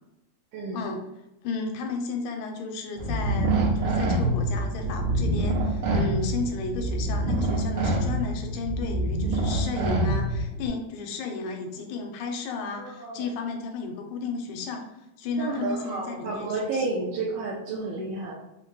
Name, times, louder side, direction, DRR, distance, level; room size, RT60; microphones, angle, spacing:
voice 1, 0.5-0.8 12.8-13.3 15.4-18.3, right 3 dB, 85° right, -3 dB, 1.3 m, -31 dB
voice 2, 1.4-14.8 15.2-16.9, left 4 dB, 85° left, 4 dB, 2.0 m, -33 dB
sound 1, 3.0-10.7, right 1 dB, 65° right, 1.5 m, -26 dB
4.8 x 2.1 x 3.0 m, 0.91 s
omnidirectional pair, 3.3 m